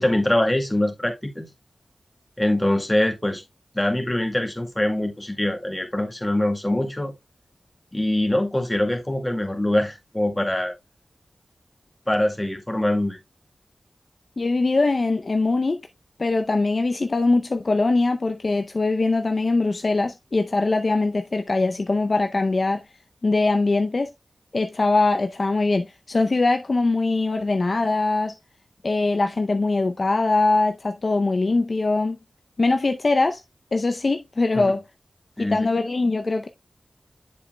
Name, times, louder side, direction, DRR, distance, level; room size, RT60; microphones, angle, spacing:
voice 1, 0.0-1.5 2.4-3.4 3.7-7.1 7.9-10.7 12.1-13.2 34.5-34.7 35.4-35.7, left 1 dB, 20° left, 2.0 m, -23 dB
voice 2, 14.4-15.8 16.2-22.8 23.2-24.1 24.5-28.3 28.8-32.2 32.6-33.4 33.7-34.8 35.4-36.5, left 3 dB, 55° left, 0.6 m, -22 dB
7.7 x 7.0 x 2.2 m
cardioid pair, 55°, 0 cm